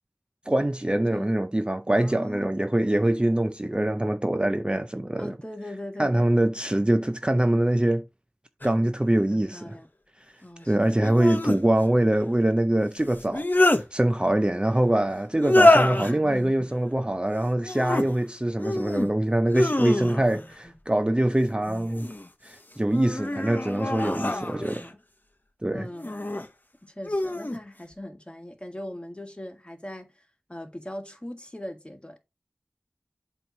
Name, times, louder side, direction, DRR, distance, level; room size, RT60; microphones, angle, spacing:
voice 1, 0.5-5.4 6.0-8.0 8.6-9.7 10.6-20.4 20.9-22.1 22.4-24.8 25.6-25.9, right 1 dB, 20° right, 0.4 m, -24 dB
voice 2, 1.9-2.5 5.2-6.3 9.3-9.9 10.4-11.0 16.0-16.7 20.1-20.7 23.3-23.5 24.0-25.0 25.7-26.2 26.8-32.2, left 1 dB, 20° left, 1.6 m, -40 dB
sound 1, 8.6-8.7 11.0-11.6 13.1-13.8 15.4-16.1 17.6-18.1 18.6-19.1 19.5-20.4 21.6-22.3 22.9-24.9 26.0-26.5 27.0-27.6, left 1 dB, 40° left, 0.8 m, -24 dB
7.7 x 3.0 x 5.2 m
wide cardioid pair, 45°, 5 cm